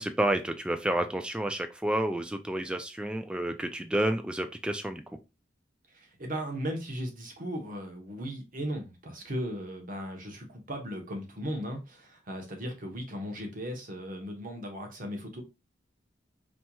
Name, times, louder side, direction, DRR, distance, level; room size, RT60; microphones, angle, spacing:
voice 1, 0.0-5.0, right 1 dB, 5° right, 7 dB, 0.3 m, -30 dB
voice 2, 5.9-15.4, equal, 50° right, 3 dB, 1.0 m, -37 dB
4.3 x 2.9 x 2.2 m, 0.26 s
head